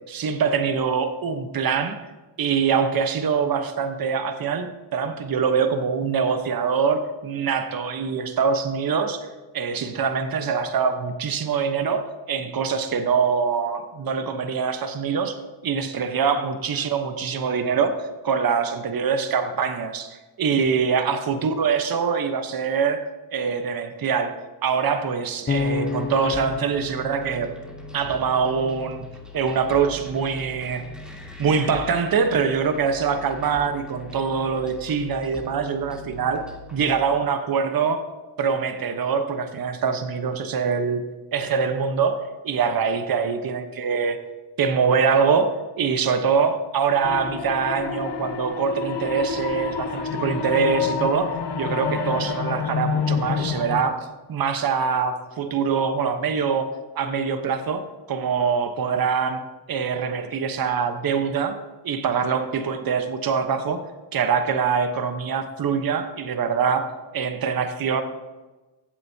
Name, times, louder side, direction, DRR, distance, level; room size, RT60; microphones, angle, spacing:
voice 1, 0.1-2.0 2.4-9.3 9.5-15.4 15.6-18.0 18.2-23.0 23.3-24.3 24.6-27.5 27.9-29.1 29.3-30.8 31.4-36.4 36.7-38.0 38.4-41.0 41.3-42.2 42.4-44.2 44.6-45.5 45.8-56.7 57.0-59.4 59.7-61.6 61.8-63.8 64.1-66.9 67.1-68.0, right 6 dB, 45° right, 8 dB, 1.1 m, -24 dB
Bass guitar, 25.5-28.5, left 5 dB, 25° left, 0.8 m, -30 dB
sound 1, 25.6-37.0, left 1 dB, ahead, 2.2 m, -41 dB
sound 2, 47.0-53.8, left 6 dB, 55° left, 1.2 m, -28 dB
14.5 x 7.8 x 2.8 m, 1.2 s
cardioid pair, 70°, 49 cm